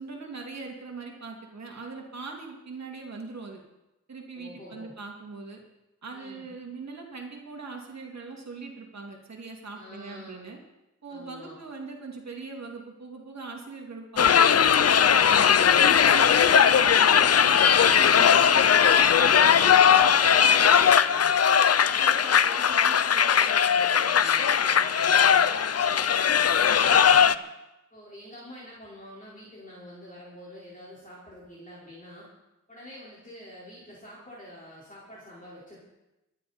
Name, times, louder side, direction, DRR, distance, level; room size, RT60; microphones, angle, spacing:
voice 1, 0.0-3.6 4.1-5.6 6.0-10.6 11.0-14.7 15.2-20.2, right 4 dB, 60° right, 1 dB, 2.7 m, -41 dB
voice 2, 4.4-4.9 6.1-6.4 9.7-10.5 11.1-11.6 20.7-21.3 21.8-27.3 27.9-32.3 32.7-35.8, left 1 dB, 25° left, -7 dB, 4.7 m, -46 dB
sound 1, 14.2-27.4, left 8 dB, 55° left, 0.6 m, -19 dB
24.5 x 10.5 x 4.4 m, 0.97 s
wide cardioid pair, 105°, 30 cm